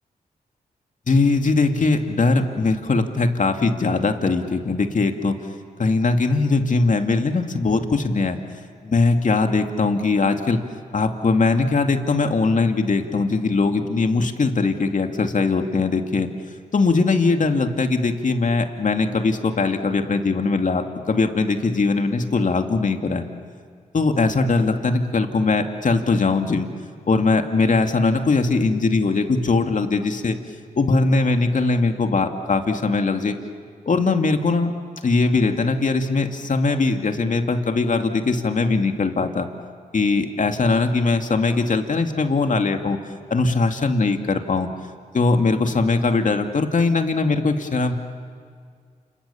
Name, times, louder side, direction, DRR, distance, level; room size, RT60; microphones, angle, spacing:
voice 1, 1.1-5.3 5.8-8.4 8.8-10.6 10.9-16.3 16.7-23.2 23.9-26.7 27.1-30.3 30.8-33.4 33.9-34.7 35.0-39.5 39.9-43.0 43.3-44.7 45.1-47.9, left 3 dB, 55° left, 5 dB, 2.6 m, -20 dB
29.0 x 28.0 x 7.2 m, 2.1 s
cardioid pair, 50°, 16 cm